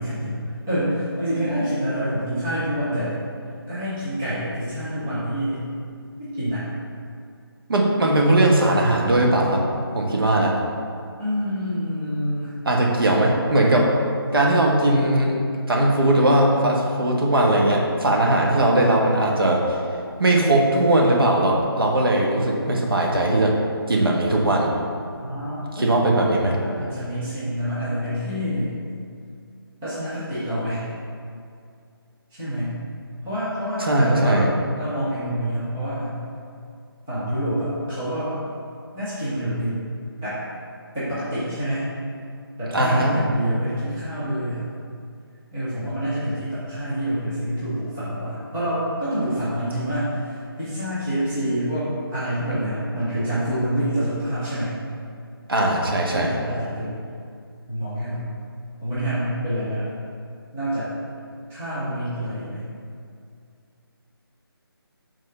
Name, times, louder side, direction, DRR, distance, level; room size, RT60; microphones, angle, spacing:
voice 1, 0.0-3.2 3.7-5.7 6.2-6.6 11.2-12.5 25.2-26.3 26.6-28.7 29.8-30.9 32.3-32.8 33.2-34.4 34.7-36.2 37.1-38.4 38.9-39.8 40.2-40.4 40.9-41.9 42.6-44.7 45.5-54.7 56.1-57.1 57.7-58.3 58.8-59.9 60.5-60.9 61.5-62.6, equal, 5° right, -15 dB, 0.4 m, -27 dB
voice 2, 7.7-9.6 9.9-10.5 12.6-13.9 14.3-15.3 15.7-19.6 20.2-23.5 23.9-24.7 25.8-26.5 33.8-34.5 42.7-43.2 55.5-56.4, right 1 dB, 65° right, -1 dB, 1.2 m, -19 dB
5.4 x 3.7 x 5.3 m, 2.4 s
figure-of-eight pair, 165°, 13 cm